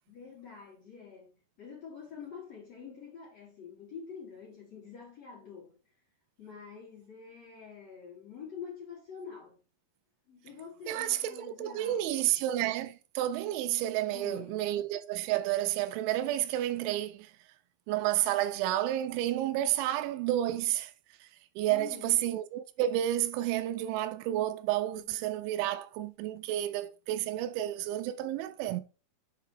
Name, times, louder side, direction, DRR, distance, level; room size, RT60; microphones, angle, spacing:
voice 1, 0.1-5.8 6.4-9.6 10.3-12.4 14.1-14.7 21.7-22.1 25.0-25.1, left 6 dB, 40° left, 3.9 m, -47 dB
voice 2, 10.9-17.3 17.9-20.9 21.2-21.3 21.6-28.8, right 13 dB, 85° right, 2.9 m, -31 dB
7.4 x 4.6 x 3.4 m
omnidirectional pair, 5.4 m